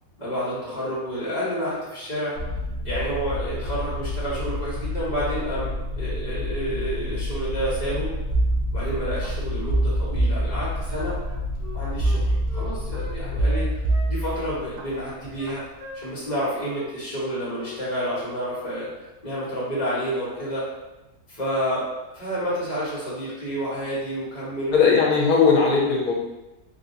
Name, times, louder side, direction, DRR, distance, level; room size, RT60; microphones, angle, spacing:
voice 1, 0.2-2.4 2.8-5.7 6.0-8.1 8.7-11.2 11.7-12.2 12.5-13.7 14.1-15.6 15.9-18.9 19.2-20.7 21.3-21.9 22.1-24.8, equal, 30° left, -8 dB, 1.2 m, -29 dB
sound 1, 2.3-15.3, left 2 dB, 60° right, 1.4 m, -30 dB
sound 2, 8.3-9.3 9.7-11.1 12.0-13.0 13.4-14.8 15.2-15.6, right 2 dB, 80° right, 1.1 m, -25 dB
Wind instrument woodwind instrument, 11.2-13.1 13.4-14.5 14.9-15.5 15.8-16.4 16.7-16.9 17.2-17.8 18.1-18.3, equal, 35° right, 1.3 m, -42 dB
voice 2, 24.7-26.1, left 5 dB, 70° left, -2 dB, 1.2 m, -18 dB
3.4 x 2.6 x 2.7 m, 1.0 s
omnidirectional pair, 1.6 m